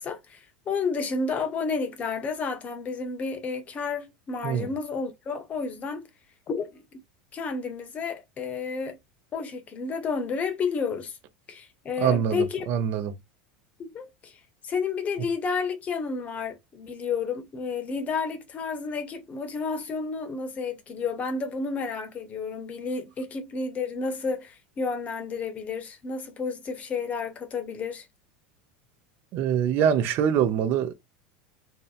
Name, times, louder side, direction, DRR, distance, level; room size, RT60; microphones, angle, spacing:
voice 1, 0.0-6.1 6.5-6.8 7.3-9.0 9.3-11.2 11.5-12.7 13.8-14.4 14.6-28.1, left 5 dB, 30° left, 0.8 m, -31 dB
voice 2, 12.0-13.1 29.3-30.9, right 8 dB, 50° right, 0.5 m, -24 dB
2.7 x 2.1 x 2.4 m
supercardioid pair, 105°, 5 cm